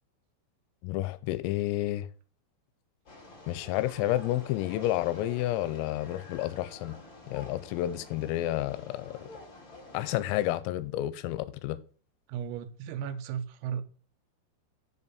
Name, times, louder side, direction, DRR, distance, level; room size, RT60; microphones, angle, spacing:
voice 1, 0.8-2.1 3.5-7.0 7.3-9.2 9.9-11.8, left 15 dB, 85° left, 3.3 m, -30 dB
sound 1, 3.1-10.6, left 2 dB, 35° left, 2.0 m, -49 dB
voice 2, 12.3-13.8, right 8 dB, 85° right, 3.5 m, -35 dB
7.2 x 5.5 x 6.8 m
omnidirectional pair, 6.0 m